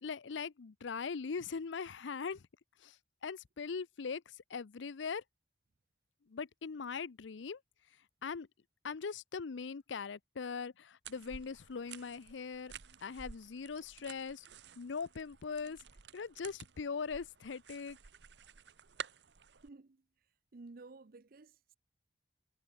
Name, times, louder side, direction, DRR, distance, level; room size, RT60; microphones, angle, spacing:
voice 1, 0.0-2.5 2.8-3.0 3.2-5.2 6.3-7.6 8.2-8.5 8.8-12.7 13.0-14.5 14.8-15.8 16.1-18.0, left 5 dB, 90° left, 0.6 m, -41 dB
sound 1, 11.0-19.7, right 7 dB, 70° right, 1.0 m, -52 dB
voice 2, 19.6-20.0 20.5-21.8, right 3 dB, 55° right, 0.6 m, -53 dB
head